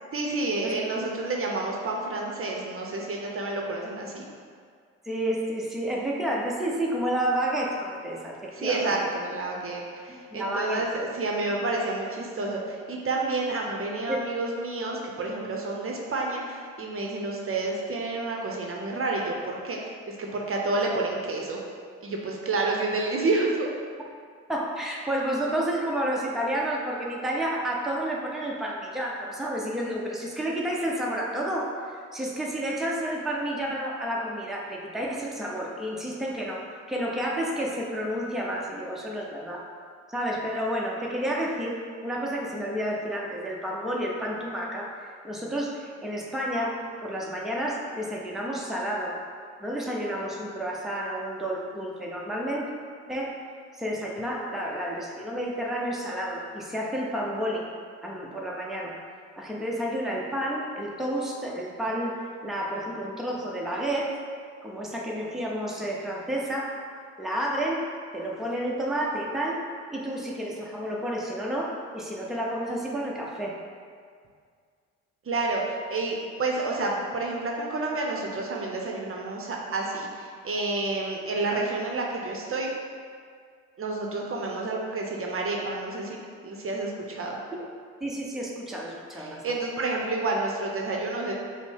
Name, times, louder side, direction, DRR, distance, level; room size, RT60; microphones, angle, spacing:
voice 1, 0.1-4.3 8.5-21.6 22.0-23.7 75.3-82.7 83.8-87.4 89.1-91.3, right 2 dB, 40° right, -1 dB, 0.7 m, -29 dB
voice 2, 5.0-9.0 10.1-10.8 14.1-14.2 24.5-31.8 32.1-39.7 40.1-49.2 49.6-52.7 53.1-53.3 53.7-57.7 58.0-59.0 59.4-62.2 62.4-64.2 64.6-66.8 67.2-73.5 88.0-89.5, right 1 dB, ahead, -3 dB, 0.7 m, -30 dB
5.2 x 2.1 x 4.6 m, 2.1 s
hypercardioid pair, 50°, 35 cm